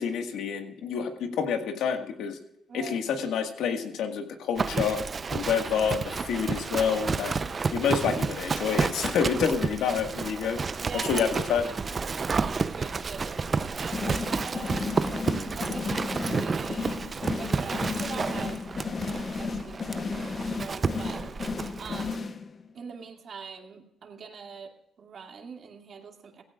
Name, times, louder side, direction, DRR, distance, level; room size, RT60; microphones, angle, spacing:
voice 1, 0.0-2.4 2.7-5.0 5.3-7.3 7.7-10.6 10.9-11.6, left 7 dB, 80° left, 5 dB, 1.7 m, -28 dB
voice 2, 2.7-3.0 10.8-11.3 12.3-15.0 15.6-18.6 19.0-21.2 21.8-22.3 22.7-26.4, right 5 dB, 55° right, 3 dB, 2.3 m, -43 dB
Livestock farm animals working animals, 4.6-22.2, right 4 dB, 35° right, 0.6 m, -31 dB
sound 1, 13.9-22.7, left 4 dB, 40° left, 0.9 m, -34 dB
17.5 x 16.0 x 2.4 m, 0.83 s
cardioid pair, 85°, 0 cm